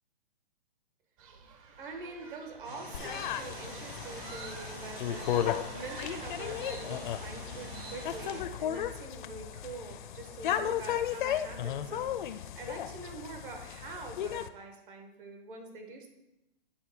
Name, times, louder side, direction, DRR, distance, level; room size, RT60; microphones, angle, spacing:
sound 1, 1.2-6.2, right 5 dB, 35° right, 0.8 m, -51 dB
voice 1, 1.8-16.1, right 3 dB, 60° right, 3 dB, 1.5 m, -45 dB
sound 2, 2.6-8.4, right 1 dB, 85° right, 2.5 m, -44 dB
sound 3, 2.9-14.5, left 10 dB, 55° left, 0.4 m, -35 dB
8.9 x 3.8 x 4.3 m, 0.90 s
hypercardioid pair, 135°, 30 cm